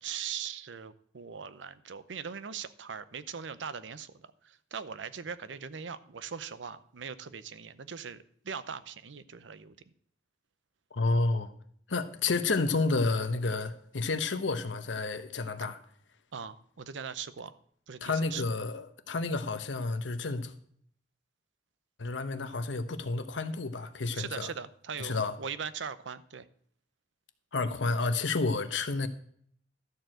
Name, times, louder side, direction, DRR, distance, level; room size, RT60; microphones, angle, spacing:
voice 1, 0.0-9.8 16.3-17.6 17.9-18.4 24.1-26.5, right 7 dB, 85° right, 0.6 m, -40 dB
voice 2, 10.9-11.5 11.9-15.8 18.0-20.5 22.0-24.5 25.0-25.4 27.5-29.1, left 3 dB, 90° left, 0.9 m, -30 dB
13.0 x 4.6 x 7.6 m
head